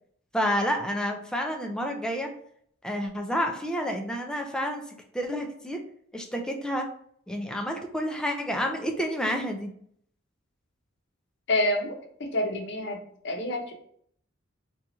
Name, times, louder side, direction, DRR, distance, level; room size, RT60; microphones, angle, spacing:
voice 1, 0.3-2.3 2.8-4.8 5.1-5.8 6.1-6.9 7.3-9.7, equal, 5° left, 3 dB, 0.4 m, -29 dB
voice 2, 11.5-13.0 13.2-13.7, left 1 dB, 60° left, 2 dB, 0.7 m, -28 dB
2.8 x 2.3 x 3.8 m, 0.64 s
head